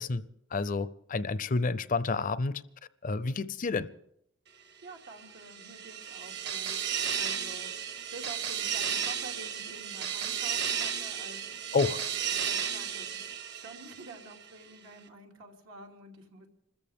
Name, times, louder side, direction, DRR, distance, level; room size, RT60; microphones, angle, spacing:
voice 1, 0.0-2.6 3.0-3.9 11.7-12.0, left 4 dB, 40° left, 17 dB, 0.5 m, -30 dB
voice 2, 4.8-6.8 7.2-12.1 12.4-16.5, right 2 dB, 90° right, 0 dB, 2.8 m, -48 dB
sound 1, 5.2-14.3, right 8 dB, 55° right, 1.3 m, -34 dB
26.5 x 14.0 x 3.6 m, 0.73 s
head